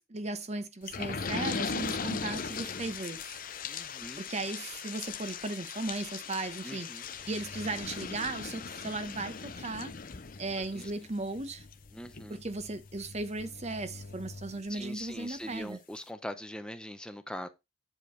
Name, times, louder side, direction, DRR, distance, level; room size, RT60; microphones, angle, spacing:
voice 1, 0.1-3.2 4.2-6.9 7.3-9.9 10.4-11.6 12.3-15.8, right 2 dB, 35° right, 0.9 m, -36 dB
sound 1, 0.9-15.2 15.6-15.7 16.0-16.1, left 5 dB, 45° left, 0.7 m, -40 dB
voice 2, 3.7-4.2 6.6-7.1 10.7-10.9 11.9-12.4 14.7-17.5, equal, 5° left, 0.7 m, -42 dB
8.6 x 4.9 x 4.6 m
head